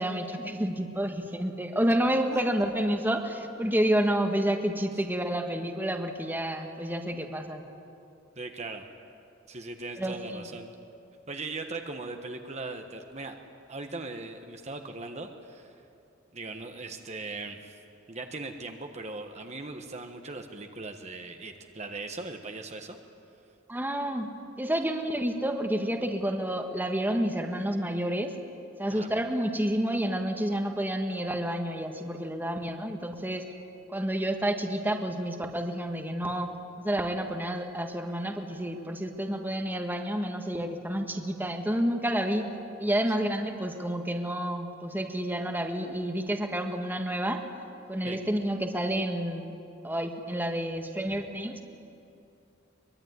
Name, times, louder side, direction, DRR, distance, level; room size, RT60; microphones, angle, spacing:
voice 1, 0.0-7.6 10.0-10.4 23.7-24.3 24.6-28.3 28.8-33.4 33.9-42.4 42.8-47.4 47.9-49.5 49.8-51.6, right 1 dB, 10° right, 4 dB, 1.5 m, -29 dB
voice 2, 8.4-8.9 9.5-10.7 11.3-13.4 13.7-15.7 16.3-17.7 18.1-23.0 28.9-29.1 48.0-48.2 51.1-51.2, right 3 dB, 35° right, 5 dB, 1.4 m, -39 dB
23.5 x 22.0 x 9.7 m, 2.7 s
head